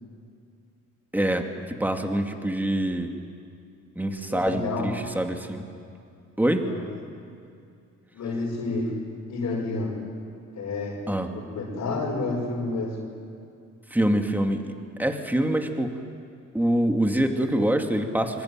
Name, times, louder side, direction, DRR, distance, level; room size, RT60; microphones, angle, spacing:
voice 1, 1.1-1.5 1.8-3.1 4.0-5.6 6.4-6.7 11.1-11.3 13.9-14.7 15.0-16.0 16.5-18.4, right 1 dB, 5° right, 4 dB, 2.5 m, -25 dB
voice 2, 4.3-4.9 6.6-6.8 8.1-8.9 9.3-10.0 10.6-11.0 11.3-13.0, left 3 dB, 65° left, -6 dB, 5.8 m, -29 dB
25.0 x 23.5 x 9.0 m, 2.4 s
cardioid pair, 90°, 30 cm